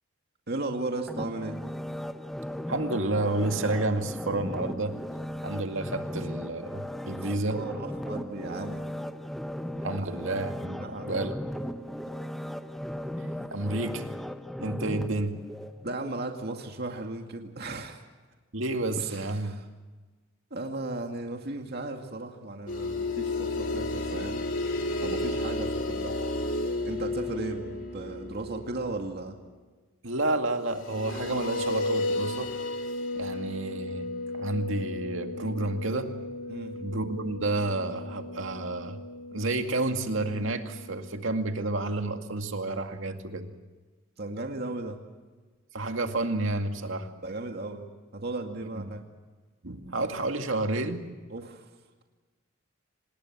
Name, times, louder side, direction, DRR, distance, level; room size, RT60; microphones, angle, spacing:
voice 1, 0.5-1.6 7.2-9.0 9.9-10.2 10.8-11.3 15.8-18.1 19.0-19.7 20.5-24.4 25.0-26.2 26.9-29.4 36.5-36.8 44.2-45.0 47.2-49.0 51.3-51.6, right 2 dB, 55° right, 3 dB, 2.2 m, -36 dB
sound 1, 1.1-16.1 16.6-16.7, equal, ahead, 0.8 m, -37 dB
voice 2, 2.7-5.0 5.4-7.6 9.8-11.4 13.5-14.1 14.6-15.4 18.5-19.6 30.0-32.5 33.2-34.1 34.3-36.1 36.7-39.0 39.3-43.5 45.7-47.1 48.8-48.9 49.6-51.0, right 2 dB, 75° right, 5 dB, 2.2 m, -30 dB
sound 2, 22.7-29.3 30.7-41.0, left 2 dB, 70° left, 3.9 m, -33 dB
26.5 x 20.0 x 7.4 m, 1.3 s
head